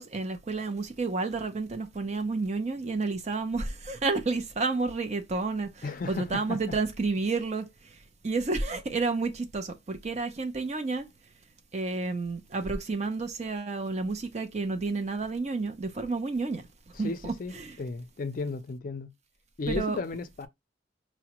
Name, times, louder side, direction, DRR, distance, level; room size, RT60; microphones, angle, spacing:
voice 1, 0.0-7.7 8.2-11.1 11.7-16.6 17.0-17.8 19.7-20.0, right 3 dB, 40° right, 0.6 m, -30 dB
voice 2, 5.8-6.7 16.9-19.1 19.6-20.5, left 3 dB, 50° left, 0.4 m, -35 dB
4.7 x 2.1 x 2.9 m
head